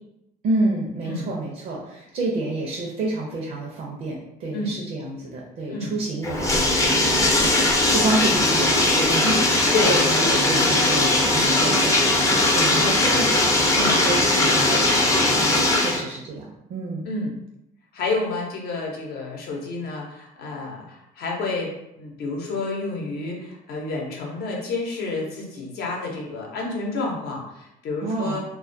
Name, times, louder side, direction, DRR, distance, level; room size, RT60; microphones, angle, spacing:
voice 1, 0.4-11.9 12.3-15.4 15.7-17.1 28.0-28.4, right 2 dB, 55° right, -2 dB, 0.5 m, -29 dB
Bathtub (filling or washing), 6.2-16.0, left 2 dB, 20° left, 0.5 m, -19 dB
voice 2, 17.9-21.7 22.0-28.4, left 3 dB, 70° left, -1 dB, 0.7 m, -29 dB
2.2 x 2.1 x 2.6 m, 0.86 s
cardioid pair, 110°, 17 cm